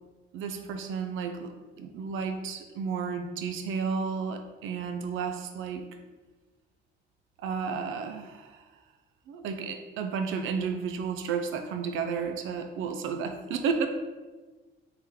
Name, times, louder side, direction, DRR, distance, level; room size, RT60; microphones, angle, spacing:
voice 1, 0.3-5.8 7.4-8.6 9.3-13.9, right 5 dB, 85° right, 7 dB, 0.5 m, -32 dB
3.5 x 3.4 x 4.4 m, 1.3 s
cardioid pair, 90°, 20 cm